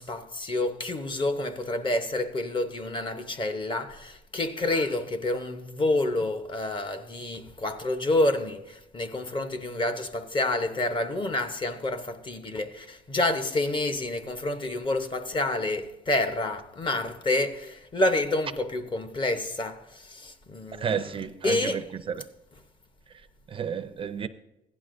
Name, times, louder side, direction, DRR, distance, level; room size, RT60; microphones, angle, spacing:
voice 1, 0.0-20.9 21.4-21.8, left 2 dB, 30° left, 0.9 m, -28 dB
voice 2, 20.8-22.2 23.1-24.3, right 7 dB, 30° right, 0.5 m, -32 dB
16.0 x 11.0 x 2.6 m
cardioid pair, 110°, 17 cm